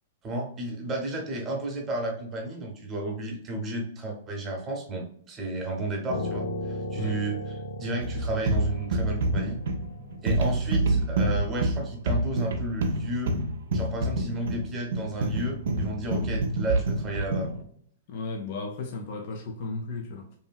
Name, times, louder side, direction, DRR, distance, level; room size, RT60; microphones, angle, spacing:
voice 1, 0.2-9.6 10.2-13.4 13.7-17.6, right 2 dB, 25° right, 0.8 m, -32 dB
Piano, 6.1-11.4, left 1 dB, 80° left, 0.7 m, -36 dB
sound 1, 8.0-17.6, right 2 dB, 75° right, 0.4 m, -27 dB
voice 2, 18.1-20.4, left 3 dB, 55° left, 0.4 m, -35 dB
2.6 x 2.6 x 2.2 m
hypercardioid pair, 130°, 0 cm